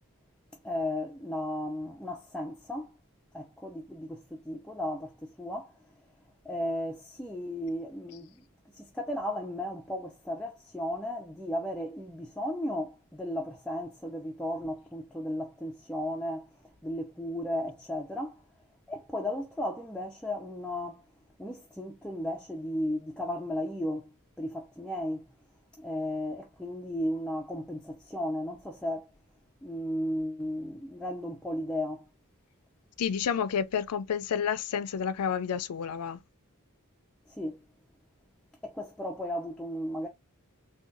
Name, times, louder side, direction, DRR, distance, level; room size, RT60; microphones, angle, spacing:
voice 1, 0.6-2.9 3.3-5.8 6.4-8.4 8.7-16.5 16.8-18.4 18.9-21.0 21.4-24.1 24.4-25.2 25.8-29.1 29.6-32.1 37.3-37.6 38.6-40.1, left 1 dB, 5° left, 0.4 m, -35 dB
voice 2, 33.0-36.2, left 7 dB, 85° left, 0.4 m, -30 dB
3.6 x 2.3 x 2.5 m
head